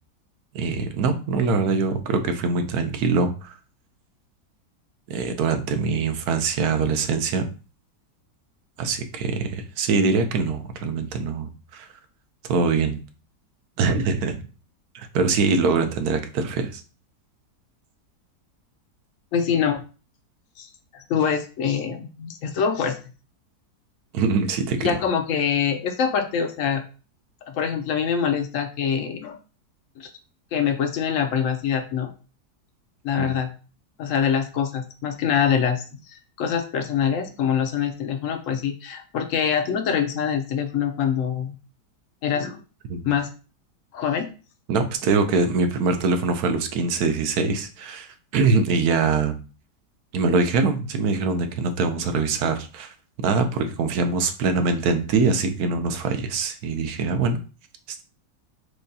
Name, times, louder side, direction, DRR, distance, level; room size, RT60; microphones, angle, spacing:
voice 1, 0.5-3.5 5.1-7.5 8.8-11.9 12.5-13.0 13.8-14.4 14.9-16.8 24.1-25.0 33.2-33.3 42.9-43.0 44.7-49.4 50.1-52.9 53.2-57.4, right 4 dB, 70° right, 7 dB, 1.1 m, -23 dB
voice 2, 19.3-19.8 20.6-23.0 24.8-26.8 27.5-29.4 30.0-30.1 30.5-32.1 33.0-33.5 34.0-41.6 42.2-42.6 43.0-43.3 43.9-44.3, left 7 dB, 65° left, 7 dB, 0.8 m, -24 dB
6.3 x 2.3 x 2.6 m, 0.35 s
omnidirectional pair, 1.7 m